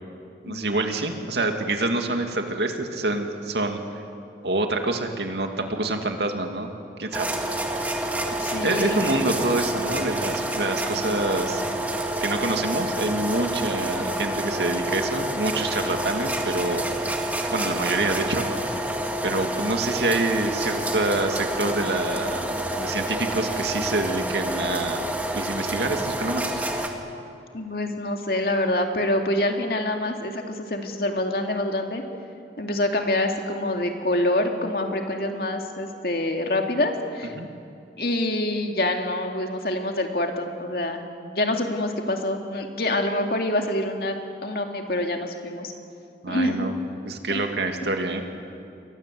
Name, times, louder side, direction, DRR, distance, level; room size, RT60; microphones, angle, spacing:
voice 1, 0.4-3.8 4.4-6.7 7.0-7.3 8.6-11.6 12.2-16.8 17.1-17.3 17.5-18.5 19.2-25.1 25.3-26.5 37.4-37.5 46.2-46.7 47.1-48.2, right 2 dB, 75° right, 4 dB, 2.5 m, -26 dB
sound 1, 7.1-26.9, right 1 dB, 10° right, 1.8 m, -28 dB
voice 2, 8.4-9.1 13.6-13.9 27.5-32.0 32.6-37.3 38.0-41.0 41.3-44.2 44.4-45.7 46.3-46.7 47.3-47.4, left 1 dB, 55° left, 3 dB, 2.5 m, -26 dB
29.0 x 22.5 x 7.8 m, 2.5 s
head